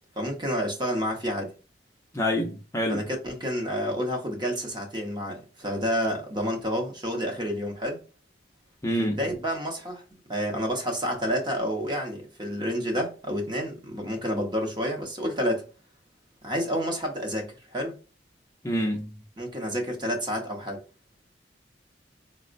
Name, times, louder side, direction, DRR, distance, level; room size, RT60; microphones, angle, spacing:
voice 1, 0.2-1.5 2.9-8.0 9.0-10.0 10.3-15.7 16.4-18.0 19.4-20.8, equal, 25° right, 0.7 m, -29 dB
voice 2, 2.1-3.1 8.8-9.2 18.6-19.2, equal, 15° left, 0.5 m, -27 dB
4.1 x 2.0 x 2.5 m
head